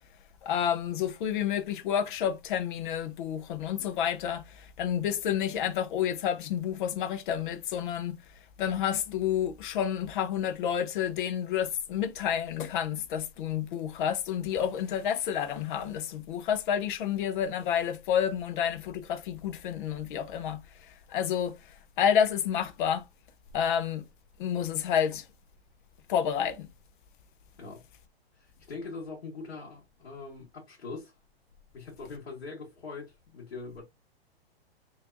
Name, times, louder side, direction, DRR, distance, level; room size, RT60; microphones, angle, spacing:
voice 1, 0.4-8.2 8.6-21.6 22.0-23.1 23.5-24.0 24.4-25.3 26.1-26.7, left 9 dB, 50° left, 0.7 m, -29 dB
voice 2, 28.4-31.1 31.7-33.8, left 4 dB, 80° left, 1.7 m, -42 dB
3.3 x 3.3 x 2.6 m
hypercardioid pair, 130°, 31 cm